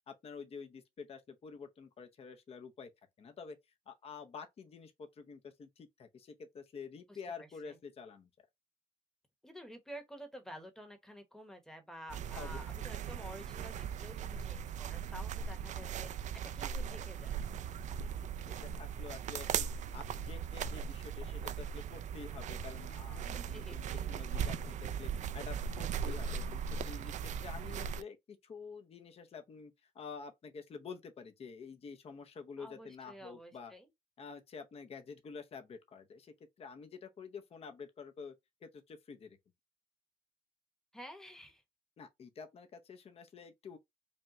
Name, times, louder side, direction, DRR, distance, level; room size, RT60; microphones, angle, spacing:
voice 1, 0.1-2.9 3.2-3.6 3.9-8.3 12.3-12.9 18.5-19.7 19.9-33.7 34.2-38.3 38.6-39.4 42.0-43.8, left 5 dB, 35° left, 0.8 m, -49 dB
voice 2, 7.4-7.8 9.4-17.4 23.3-24.1 32.6-33.9 40.9-41.6, equal, 5° left, 1.1 m, -51 dB
sound 1, 12.1-28.0, right 7 dB, 45° right, 0.4 m, -39 dB
5.1 x 2.3 x 3.0 m
cardioid pair, 110°, 17 cm